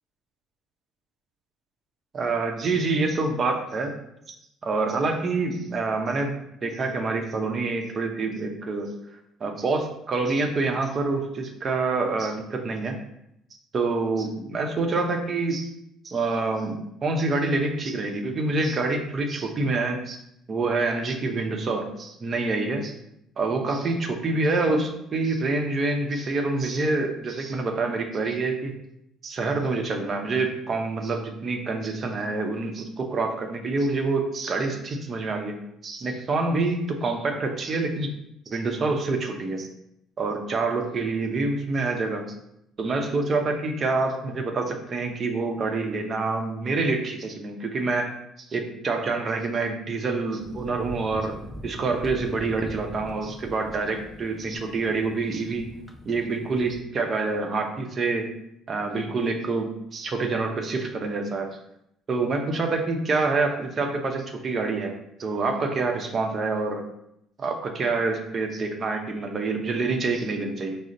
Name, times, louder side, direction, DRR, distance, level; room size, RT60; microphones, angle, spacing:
voice 1, 2.1-4.0 4.3-4.4 4.6-8.9 9.4-13.0 13.7-15.7 16.0-20.2 20.5-22.9 23.4-28.7 29.2-38.1 38.5-39.7 40.2-42.4 42.8-55.8 56.0-58.3 58.7-61.5 62.1-64.9 65.2-66.8 67.4-70.8, right 3 dB, 45° right, 4 dB, 0.7 m, -27 dB
sound 1, 50.4-56.8, equal, 5° left, 0.5 m, -43 dB
5.0 x 2.0 x 3.7 m, 0.78 s
hypercardioid pair, 60°, 0 cm